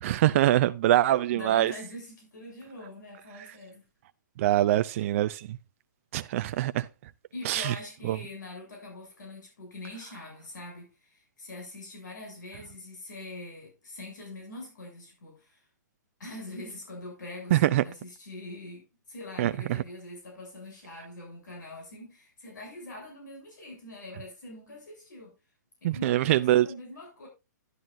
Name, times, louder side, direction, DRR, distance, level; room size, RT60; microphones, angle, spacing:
voice 1, 0.0-1.7 4.4-5.6 6.1-6.9 7.4-7.7 8.0-8.2 17.5-17.8 19.4-19.8 25.8-26.7, right 13 dB, 45° right, 0.4 m, -24 dB
voice 2, 1.1-3.8 7.3-15.7 16.2-25.3 25.8-27.3, left 2 dB, 75° left, 6.9 m, -43 dB
11.0 x 11.0 x 2.5 m
hypercardioid pair, 140°, 10 cm